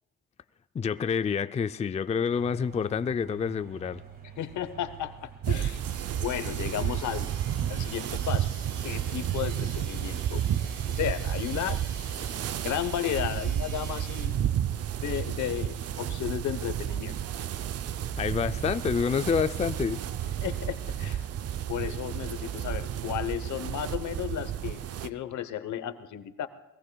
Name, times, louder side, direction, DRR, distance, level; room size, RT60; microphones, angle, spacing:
voice 1, 0.7-4.0 18.2-20.0, left 6 dB, 25° left, 0.4 m, -28 dB
sound 1, 2.3-21.6, right 6 dB, 30° right, 2.0 m, -49 dB
voice 2, 4.4-5.8 6.2-7.3 7.7-8.5 8.8-10.4 11.0-11.8 12.6-14.4 15.0-17.2 20.4-21.2 21.7-26.5, left 11 dB, 75° left, 1.0 m, -33 dB
sound 2, 5.4-25.1, right 10 dB, 55° right, 0.6 m, -32 dB
sound 3, 5.8-14.3, right 5 dB, 85° right, 3.8 m, -46 dB
22.5 x 21.0 x 2.3 m
cardioid pair, 90°, 30 cm